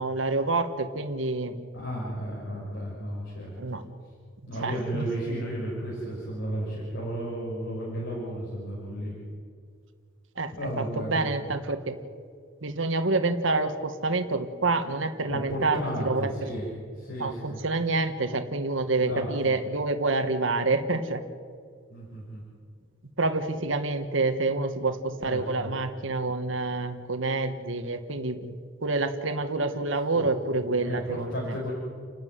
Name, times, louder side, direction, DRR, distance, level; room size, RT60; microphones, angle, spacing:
voice 1, 0.0-1.6 3.6-3.8 4.6-5.1 10.4-12.0 12.6-16.3 17.2-21.2 23.2-28.5 28.8-31.6, right 3 dB, 70° right, 8 dB, 1.5 m, -27 dB
voice 2, 1.7-3.8 4.5-9.1 10.5-11.3 15.3-16.7 17.0-17.6 18.9-19.5 21.9-22.4 25.3-25.7 29.7-29.8 30.1-30.3 30.5-31.7, right 1 dB, 60° left, -5 dB, 6.0 m, -34 dB
30.0 x 12.5 x 9.5 m, 2.1 s
head